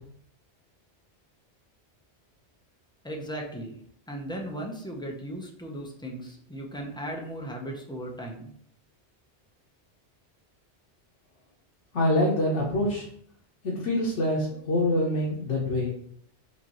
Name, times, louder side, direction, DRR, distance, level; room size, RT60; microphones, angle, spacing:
voice 1, 3.0-3.8 4.1-8.5, right 1 dB, 5° left, 0 dB, 0.4 m, -37 dB
voice 2, 11.9-13.0 13.6-15.9, left 1 dB, 90° left, -4 dB, 1.2 m, -25 dB
4.8 x 3.0 x 2.9 m, 0.64 s
omnidirectional pair, 1.2 m